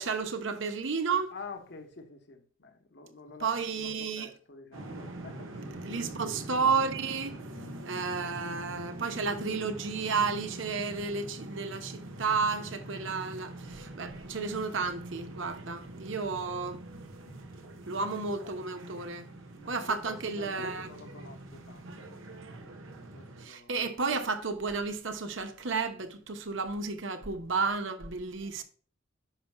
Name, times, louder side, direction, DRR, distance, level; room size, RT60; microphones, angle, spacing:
voice 1, 0.0-1.3 3.4-4.3 5.8-7.4 7.8-16.8 17.9-19.3 19.7-20.9 23.4-28.6, right 4 dB, 65° right, 1.0 m, -32 dB
voice 2, 1.3-3.7 4.1-6.2 19.8-23.7 28.4-28.6, left 4 dB, 55° left, 1.0 m, -48 dB
sound 1, 4.7-23.5, right 2 dB, 85° right, 1.2 m, -44 dB
10.0 x 5.8 x 2.3 m
head